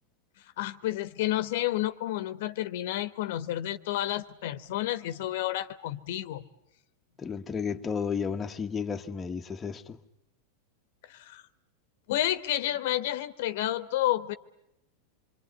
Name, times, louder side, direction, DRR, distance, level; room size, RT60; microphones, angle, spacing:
voice 1, 0.6-6.5 11.1-11.4 12.1-14.3, left 14 dB, 65° left, 1.1 m, -30 dB
voice 2, 7.2-10.0, left 6 dB, 15° left, 1.2 m, -32 dB
27.0 x 23.5 x 9.5 m
supercardioid pair, 135°, 0 cm